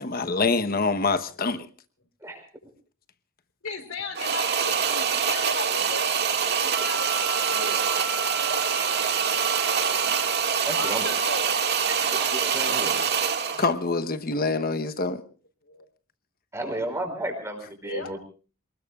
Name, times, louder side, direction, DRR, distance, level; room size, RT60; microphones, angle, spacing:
voice 1, 0.0-1.7 13.6-15.2, left 3 dB, 45° left, 10 dB, 1.1 m, -25 dB
voice 2, 3.6-6.3 6.6-7.9 8.5-8.6 9.6-9.7 10.7-11.9 15.7-15.9 17.8-18.1, left 3 dB, 65° left, 8 dB, 3.8 m, -36 dB
sound 1, 4.2-13.7, right 7 dB, 50° right, 2.0 m, -25 dB
Wind instrument woodwind instrument, 6.7-10.5, right 3 dB, 80° right, 3.4 m, -37 dB
voice 3, 10.6-11.0 11.9-13.0 16.5-18.2, right 1 dB, 15° right, 5 dB, 4.9 m, -33 dB
28.0 x 20.0 x 2.4 m, 0.37 s
head